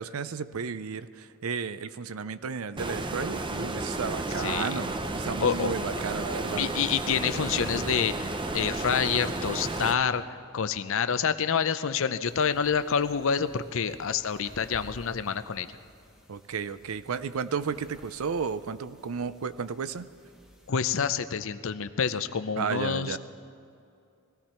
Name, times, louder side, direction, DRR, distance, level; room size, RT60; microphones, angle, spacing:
voice 1, 0.0-6.7 16.3-20.1 22.6-23.2, right 5 dB, 75° right, 14 dB, 0.5 m, -33 dB
Stream, 2.8-10.0, right 2 dB, 20° right, 0.6 m, -32 dB
voice 2, 4.4-4.7 5.4-5.7 6.5-10.2 10.5-15.7 20.7-23.2, left 6 dB, 60° left, 12 dB, 0.6 m, -27 dB
sound 1, 12.2-20.7, equal, 5° right, 1.1 m, -55 dB
21.0 x 15.5 x 4.4 m, 2.5 s
head